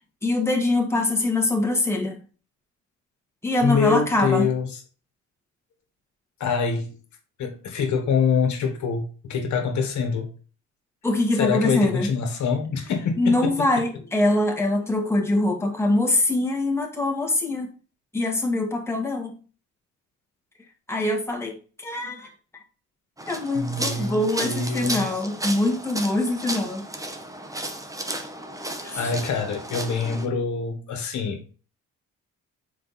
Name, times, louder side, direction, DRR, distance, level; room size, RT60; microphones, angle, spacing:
voice 1, 0.2-2.2 3.4-4.5 11.0-12.1 13.2-17.7 18.1-19.3 20.9-22.3 22.5-22.6 23.3-26.9 28.8-29.1, left 2 dB, 10° left, 1.9 m, -23 dB
voice 2, 3.6-4.8 6.4-6.9 7.4-10.3 11.3-13.5 23.5-25.1 28.9-31.5, left 5 dB, 70° left, 1.5 m, -25 dB
sound 1, 23.2-30.3, right 1 dB, 10° right, 1.0 m, -33 dB
5.1 x 4.6 x 4.2 m
cardioid pair, 90°, 30 cm